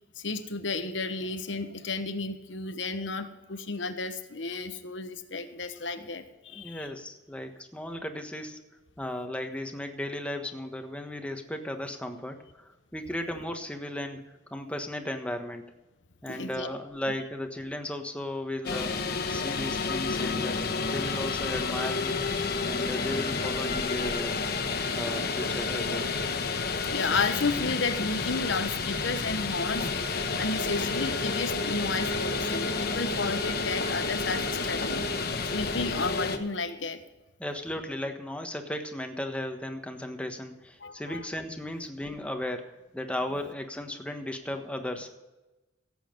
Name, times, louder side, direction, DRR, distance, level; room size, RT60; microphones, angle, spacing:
voice 1, 0.2-6.9 16.3-16.7 26.9-35.0 35.5-37.0 40.8-41.2, left 3 dB, 85° left, 9 dB, 1.1 m, -32 dB
voice 2, 6.5-8.6 9.0-15.7 16.2-20.6 20.9-22.1 22.6-24.4 24.9-26.1 37.4-45.1, left 1 dB, 5° left, 5 dB, 1.3 m, -36 dB
sound 1, 18.6-36.4, left 4 dB, 60° left, 1.1 m, -30 dB
16.5 x 8.3 x 5.2 m, 1.1 s
head